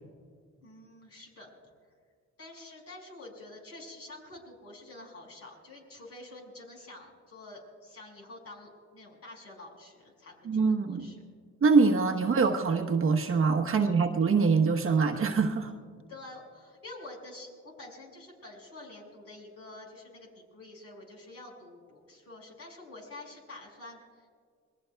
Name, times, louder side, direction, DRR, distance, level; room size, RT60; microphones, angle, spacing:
voice 1, 0.6-1.5 2.4-11.2 15.9-24.3, left 2 dB, 50° left, 0 dB, 5.4 m, -48 dB
voice 2, 10.4-11.1 11.6-15.7, right 4 dB, 45° right, 4 dB, 1.1 m, -24 dB
27.0 x 20.5 x 2.3 m, 2.1 s
cardioid pair, 90°, 30 cm